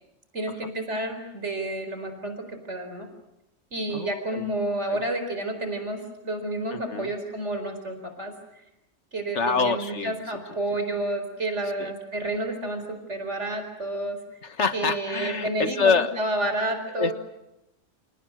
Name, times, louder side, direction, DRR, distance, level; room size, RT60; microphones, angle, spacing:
voice 1, 0.3-3.1 3.7-8.3 9.1-14.2 14.7-17.1, right 2 dB, 75° right, 7 dB, 4.7 m, -30 dB
voice 2, 3.9-4.5 4.9-5.0 6.7-7.1 9.3-10.2 11.8-11.9 14.4-16.1 16.9-17.1, left 5 dB, 80° left, 10 dB, 1.8 m, -26 dB
29.0 x 28.0 x 6.3 m, 0.88 s
omnidirectional pair, 1.2 m